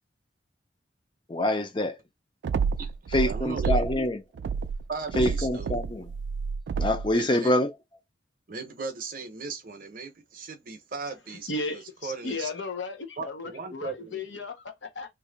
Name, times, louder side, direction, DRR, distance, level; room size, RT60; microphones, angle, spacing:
voice 1, 1.3-1.9 3.1-4.2 5.2-6.1 6.8-7.7, left 1 dB, 25° left, 0.5 m, -25 dB
sound 1, 2.4-4.0 4.4-7.1, right 5 dB, 70° right, 0.3 m, -29 dB
voice 2, 3.2-3.9 4.9-5.7 7.1-7.5 8.5-12.5 13.2-14.4, right 4 dB, 45° right, 0.7 m, -37 dB
voice 3, 11.5-15.1, left 3 dB, 75° left, 0.8 m, -35 dB
2.9 x 2.6 x 3.8 m
head